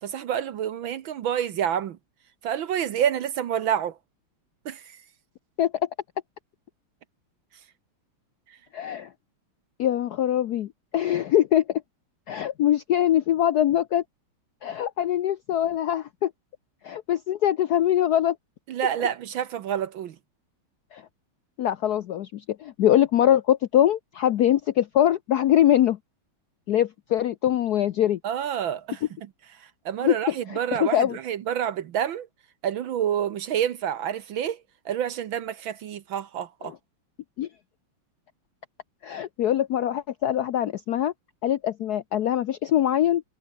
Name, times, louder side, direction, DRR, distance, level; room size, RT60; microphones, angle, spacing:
voice 1, 0.0-2.0 2.4-3.9 4.6-4.8 18.7-20.1 28.2-29.0 29.8-32.3 32.6-34.6 34.8-36.7, right 9 dB, 65° right, 1.7 m, -28 dB
voice 2, 8.7-9.1 9.8-11.8 12.3-14.0 14.6-16.3 16.8-18.4 20.9-21.0 21.6-26.0 26.7-28.2 30.0-31.2 36.6-36.8 37.4-37.5 39.0-41.1 41.4-43.2, left 11 dB, 75° left, 0.9 m, -23 dB
omnidirectional pair, 2.4 m